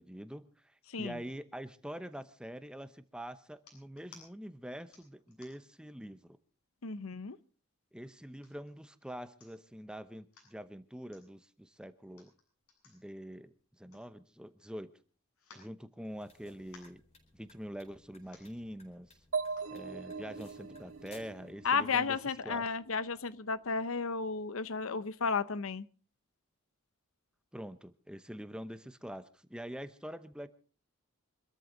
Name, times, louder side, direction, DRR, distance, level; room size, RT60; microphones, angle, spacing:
voice 1, 0.0-6.4 7.9-12.3 12.9-14.9 15.5-17.0 17.3-19.2 19.7-22.2 22.4-22.7 27.5-30.5, equal, 5° right, 11 dB, 0.9 m, -45 dB
sound 1, 3.6-4.3 4.9-5.8 6.3-6.4 6.8-7.4 8.0-8.7 9.1-9.2 9.4-9.8 10.1-10.5 11.1-11.2 12.0-14.5 14.8-14.9 15.3-16.3 16.6-17.0 17.8-17.9 18.2-18.6 19.4-19.7 20.3-20.4, left 4 dB, 90° left, 7.8 m, -60 dB
voice 2, 6.8-7.4 21.6-25.9, left 5 dB, 70° left, 15 dB, 0.8 m, -33 dB
sound 2, 16.0-21.5, left 2 dB, 30° left, 4.3 m, -61 dB
sound 3, 19.3-23.0, right 5 dB, 75° right, 1.7 m, -40 dB
25.5 x 13.5 x 3.9 m, 0.39 s
head